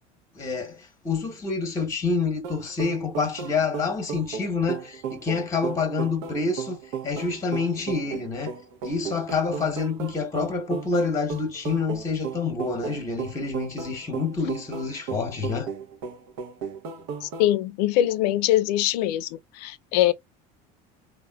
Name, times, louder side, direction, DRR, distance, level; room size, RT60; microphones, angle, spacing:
voice 1, 0.3-8.5 8.8-15.7, left 4 dB, 15° left, 0.9 m, -27 dB
sound 1, 2.4-17.5, right 7 dB, 70° right, 0.6 m, -35 dB
voice 2, 17.2-20.1, left 13 dB, 85° left, 0.4 m, -23 dB
3.4 x 2.2 x 2.2 m
supercardioid pair, 115°, 20 cm